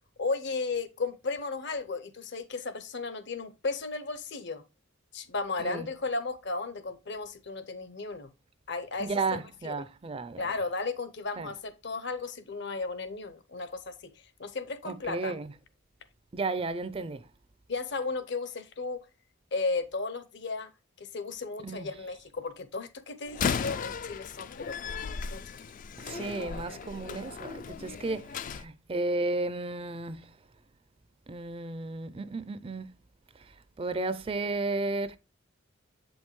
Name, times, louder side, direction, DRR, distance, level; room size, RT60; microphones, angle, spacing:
voice 1, 0.2-4.6 5.1-8.3 8.7-9.8 10.4-14.1 14.4-15.3 17.7-19.0 19.5-20.7 21.0-25.0 25.3-25.4, left 3 dB, 60° left, 0.8 m, -34 dB
voice 2, 9.0-10.4 11.4-11.5 14.9-15.5 16.3-17.2 21.6-21.9 26.1-28.2 28.6-30.3 31.3-32.9 33.8-35.2, right 3 dB, 30° right, 0.4 m, -33 dB
Slam, 23.3-28.6, left 6 dB, 40° left, 0.4 m, -36 dB
7.6 x 5.3 x 3.1 m
head